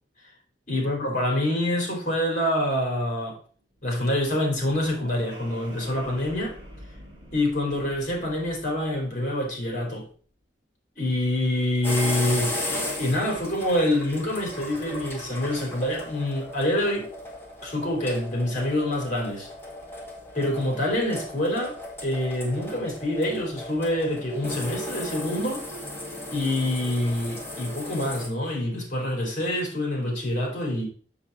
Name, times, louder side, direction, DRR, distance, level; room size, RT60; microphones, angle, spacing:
voice 1, 0.7-3.4 3.8-6.5 7.3-10.1 11.0-12.5 13.0-17.1 17.6-19.5 20.3-25.6 26.3-30.9, left 1 dB, 45° left, 3.4 m, -26 dB
sound 1, 3.6-10.1, equal, 25° right, 3.6 m, -47 dB
sound 2, 11.8-28.3, left 1 dB, 15° left, 1.8 m, -36 dB
7.2 x 7.0 x 3.9 m
head